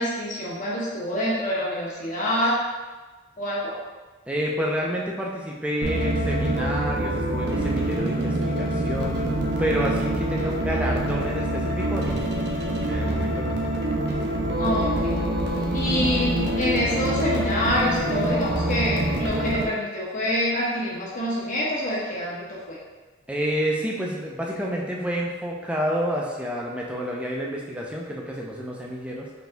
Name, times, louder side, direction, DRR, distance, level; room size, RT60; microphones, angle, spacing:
voice 1, 0.0-2.5 3.4-3.7 14.6-15.1 15.7-22.8, left 1 dB, 40° left, -6 dB, 1.0 m, -26 dB
voice 2, 4.3-12.2 12.8-13.5 23.3-29.3, equal, 5° right, -3 dB, 0.4 m, -29 dB
sound 1, 5.8-19.7, right 1 dB, 55° right, 0.6 m, -25 dB
4.1 x 2.7 x 3.4 m, 1.3 s
head